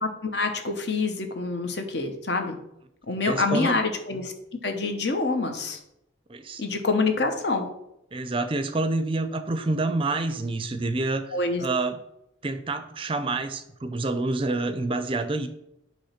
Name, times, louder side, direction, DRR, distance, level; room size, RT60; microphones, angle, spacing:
voice 1, 0.0-2.6 3.1-4.3 4.6-5.8 6.6-7.7 11.3-11.6, left 3 dB, 60° left, 6 dB, 1.0 m, -26 dB
voice 2, 3.2-3.7 6.3-6.6 8.1-11.3 11.6-12.0 12.4-15.5, right 2 dB, 30° right, 9 dB, 0.5 m, -27 dB
8.5 x 3.1 x 5.8 m, 0.81 s
head